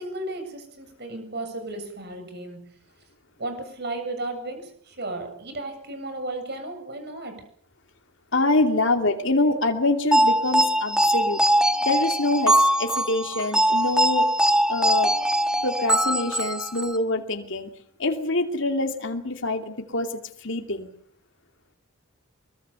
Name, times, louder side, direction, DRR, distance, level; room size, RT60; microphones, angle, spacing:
voice 1, 0.0-2.7 3.4-7.4, right 2 dB, 50° right, 7.5 m, -34 dB
voice 2, 8.3-11.4 11.9-14.3 14.7-15.1 15.6-17.7 18.0-20.1 20.4-20.9, left 2 dB, 55° left, 2.6 m, -25 dB
sound 1, 10.1-17.0, right 1 dB, 5° right, 1.4 m, -22 dB
24.0 x 23.0 x 7.0 m
head